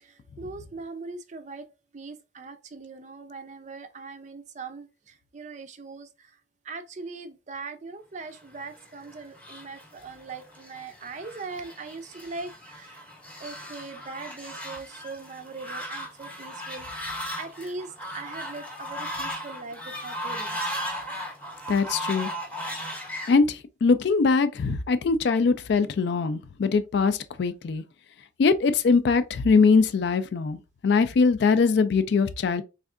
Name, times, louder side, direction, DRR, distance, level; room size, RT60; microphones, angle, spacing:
voice 1, 0.4-1.6 1.9-4.9 5.3-6.1 6.7-12.5 12.8-12.9 13.4-16.9 17.4-17.9 18.1-20.6, right 3 dB, 35° right, 0.4 m, -40 dB
Fowl, 8.6-23.4, equal, 10° left, 0.7 m, -37 dB
voice 2, 21.7-22.3 23.3-27.8 28.4-30.6 30.8-32.6, left 4 dB, 55° left, 0.3 m, -22 dB
3.5 x 3.2 x 2.4 m
head